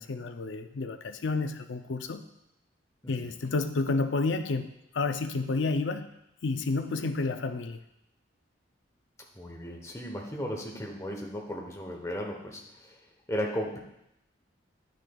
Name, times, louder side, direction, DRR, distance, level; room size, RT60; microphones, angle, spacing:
voice 1, 0.0-2.2 3.1-6.1 6.4-7.8, left 3 dB, 70° left, 9 dB, 0.5 m, -30 dB
voice 2, 9.4-13.0 13.3-13.8, equal, 15° left, 0 dB, 0.9 m, -35 dB
10.0 x 6.4 x 2.3 m, 0.83 s
head